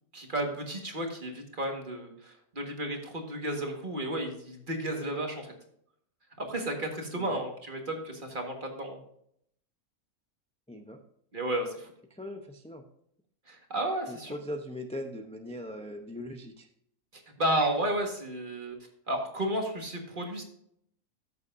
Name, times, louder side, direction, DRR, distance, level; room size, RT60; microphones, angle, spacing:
voice 1, 0.1-5.5 6.4-9.0 11.3-11.9 13.5-14.4 17.1-18.8 19.1-20.4, right 1 dB, 35° right, 2 dB, 1.7 m, -32 dB
voice 2, 10.7-11.0 12.1-12.8 14.1-16.7, left 1 dB, 10° left, 4 dB, 0.4 m, -40 dB
14.0 x 6.9 x 2.6 m, 0.70 s
omnidirectional pair, 1.5 m